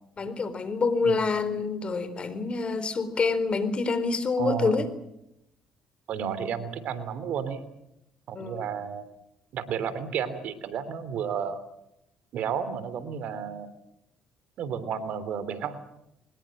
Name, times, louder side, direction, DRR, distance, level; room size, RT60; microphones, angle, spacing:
voice 1, 0.2-4.9 8.3-8.7, left 4 dB, 40° left, 13 dB, 4.0 m, -27 dB
voice 2, 4.4-4.9 6.1-7.6 8.3-9.0 9.5-11.6 12.3-13.7 14.6-15.8, right 7 dB, 65° right, 14 dB, 3.0 m, -32 dB
24.5 x 20.5 x 7.8 m, 0.80 s
hypercardioid pair, 55°, 3 cm